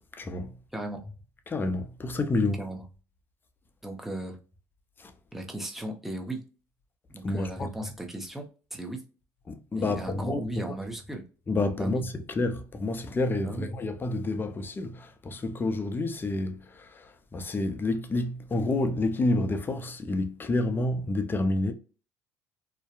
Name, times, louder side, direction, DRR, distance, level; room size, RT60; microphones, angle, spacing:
voice 1, 0.2-0.5 1.5-2.6 5.0-5.1 7.2-7.7 9.5-10.4 11.5-21.7, left 2 dB, 30° left, 0.5 m, -29 dB
voice 2, 3.8-4.4 5.3-6.4 7.1-9.0 9.8-11.2 11.7-12.0 13.4-13.7, right 1 dB, 5° right, 0.8 m, -36 dB
2.6 x 2.1 x 2.4 m
hypercardioid pair, 65°, 7 cm